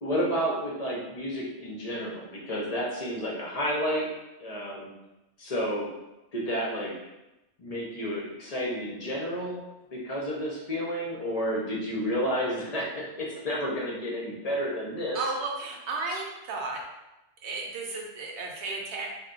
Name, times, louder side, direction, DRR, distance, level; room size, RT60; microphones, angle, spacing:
voice 1, 0.0-4.1 4.4-4.9 5.4-5.9 6.3-6.9 7.6-9.6 9.9-15.2, equal, 45° left, -4 dB, 0.5 m, -31 dB
voice 2, 15.1-16.8 17.4-19.1, right 3 dB, 70° right, 0 dB, 0.8 m, -33 dB
2.2 x 2.2 x 3.8 m, 0.97 s
omnidirectional pair, 1.3 m